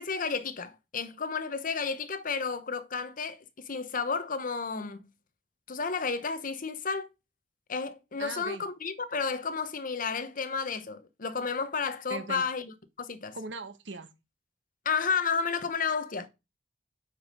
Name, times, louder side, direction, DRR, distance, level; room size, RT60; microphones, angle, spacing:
voice 1, 0.0-5.1 5.7-7.1 7.7-13.4 14.8-16.3, left 5 dB, 50° left, 0.9 m, -32 dB
voice 2, 8.2-8.6 12.1-12.4 13.3-14.1, right 3 dB, 80° right, 1.1 m, -39 dB
7.9 x 5.2 x 5.3 m
head